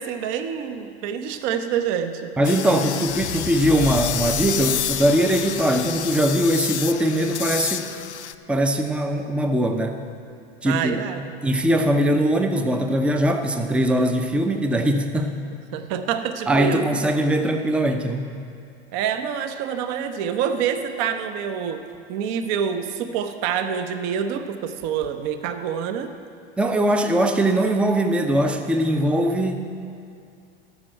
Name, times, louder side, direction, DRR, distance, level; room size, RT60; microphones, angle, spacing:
voice 1, 0.0-2.3 10.6-11.2 15.7-16.8 18.9-21.8 22.1-26.1, right 8 dB, 45° right, 8 dB, 0.8 m, -26 dB
sound 1, 2.4-8.3, left 10 dB, 90° left, 0.5 m, -29 dB
voice 2, 2.4-7.9 8.5-10.0 10.6-11.0 11.4-15.3 16.5-18.3 26.6-29.6, right 1 dB, 5° right, 5 dB, 0.6 m, -21 dB
sound 2, 3.1-7.3 7.8-7.9, left 8 dB, 35° left, 0.8 m, -36 dB
12.5 x 6.1 x 7.8 m, 2.4 s
figure-of-eight pair, 90°, 33 cm